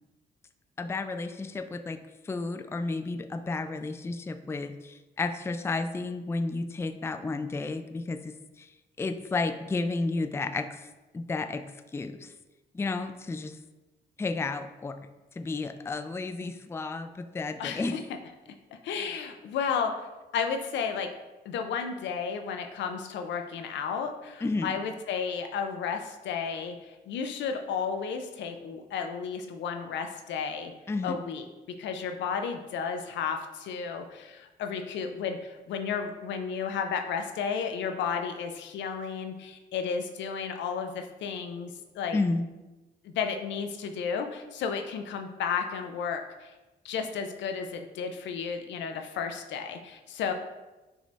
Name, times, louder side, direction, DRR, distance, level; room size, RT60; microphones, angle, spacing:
voice 1, 0.8-2.0 2.3-8.7 9.0-10.8 11.1-11.6 11.9-12.3 12.7-13.6 14.2-15.0 15.4-18.0 24.4-24.7 30.9-31.2 42.1-42.4, left 3 dB, 15° left, 9 dB, 0.3 m, -32 dB
voice 2, 17.6-18.0 18.8-20.1 20.3-21.1 21.4-30.7 31.0-31.5 31.8-42.2 43.0-46.5 46.8-50.3, left 6 dB, 80° left, 5 dB, 0.5 m, -33 dB
6.1 x 2.6 x 3.3 m, 1.1 s
cardioid pair, 65°, 19 cm